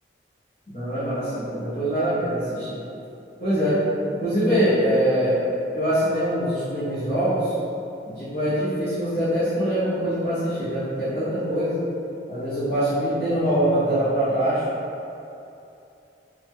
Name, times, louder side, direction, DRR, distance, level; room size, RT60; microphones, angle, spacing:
voice 1, 0.7-2.8 3.4-3.8 4.2-5.4 5.7-7.5 8.2-11.7 12.3-14.6, equal, 40° left, -16 dB, 0.8 m, -23 dB
3.1 x 2.1 x 3.5 m, 2.7 s
head